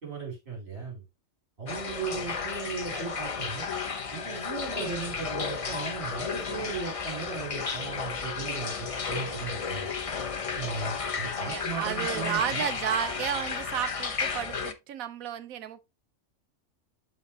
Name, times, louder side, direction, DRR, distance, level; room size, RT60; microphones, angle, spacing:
voice 1, 0.0-1.0 1.6-3.7 4.1-9.9 10.5-12.7, right 5 dB, 40° right, 3.6 m, -37 dB
sound 1, 1.7-14.7, left 5 dB, 35° left, 0.6 m, -33 dB
voice 2, 2.4-3.2 4.7-4.9 11.3-15.8, right 10 dB, 85° right, 1.2 m, -33 dB
11.5 x 4.0 x 2.8 m
omnidirectional pair, 1.4 m